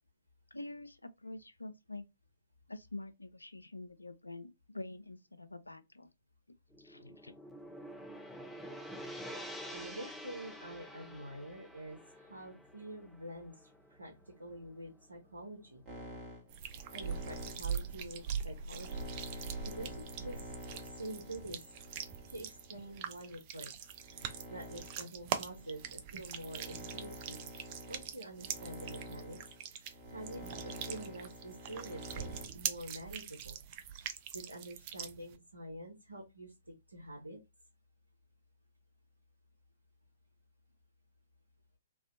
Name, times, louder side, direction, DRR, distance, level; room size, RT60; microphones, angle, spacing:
voice 1, 0.5-2.0 2.7-6.1 6.8-7.3, left 2 dB, 90° left, 0.4 m, -46 dB
Gong, 6.7-15.1, equal, 5° left, 0.7 m, -48 dB
voice 2, 9.7-15.8 16.9-21.6 22.3-23.7 24.0-27.5 27.9-29.4 29.7-33.6 34.3-36.5 36.9-37.4, right 1 dB, 85° right, 0.7 m, -47 dB
sound 1, 15.9-23.2 23.8-32.5, equal, 20° right, 1.2 m, -49 dB
sound 2, 16.5-35.4, right 8 dB, 35° right, 0.4 m, -42 dB
2.5 x 2.4 x 2.5 m
figure-of-eight pair, 120°, 0 cm